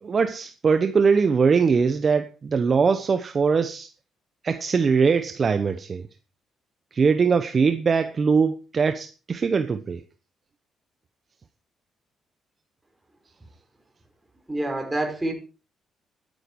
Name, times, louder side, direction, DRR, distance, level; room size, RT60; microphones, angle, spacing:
voice 1, 0.0-3.9 4.4-6.0 6.9-10.0, right 5 dB, 40° right, 1.0 m, -21 dB
voice 2, 14.5-15.3, right 1 dB, 15° right, 5.0 m, -27 dB
12.0 x 10.5 x 4.7 m
cardioid pair, 90°, 0 cm